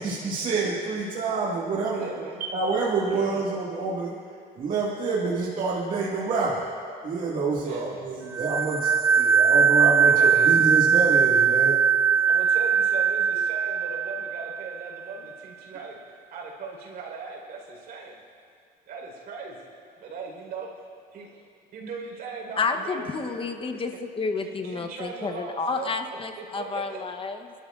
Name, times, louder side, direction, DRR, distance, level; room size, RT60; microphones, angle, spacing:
voice 1, 0.0-2.1 2.4-4.1 4.6-6.7 7.0-11.8, right 3 dB, 50° right, -6 dB, 1.9 m, -27 dB
voice 2, 1.9-2.4 3.1-3.4 7.6-8.0 9.2-9.3 10.0-10.5 12.1-18.2 18.9-19.7 20.0-20.7 21.1-21.4 21.7-23.8 24.4-25.9 26.4-27.0, right 4 dB, 65° right, -1 dB, 4.2 m, -39 dB
sound 1, 8.3-14.8, right 6 dB, 15° right, 0.5 m, -20 dB
voice 3, 22.6-27.5, left 4 dB, 30° left, 6 dB, 0.9 m, -30 dB
29.0 x 13.0 x 2.5 m, 2.2 s
cardioid pair, 110°, 17 cm